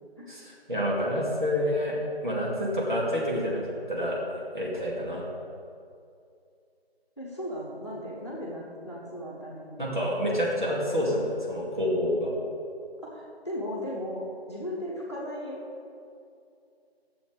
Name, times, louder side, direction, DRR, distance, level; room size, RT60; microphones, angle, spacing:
voice 1, 0.3-2.0 2.2-3.6 3.9-4.2 4.5-5.2 9.8-12.3, equal, 50° right, -5 dB, 2.3 m, -28 dB
voice 2, 7.2-9.9 13.0-14.2 14.5-15.6, equal, 25° left, -6 dB, 1.2 m, -36 dB
10.0 x 7.1 x 5.0 m, 2.5 s
figure-of-eight pair, 175°, 32 cm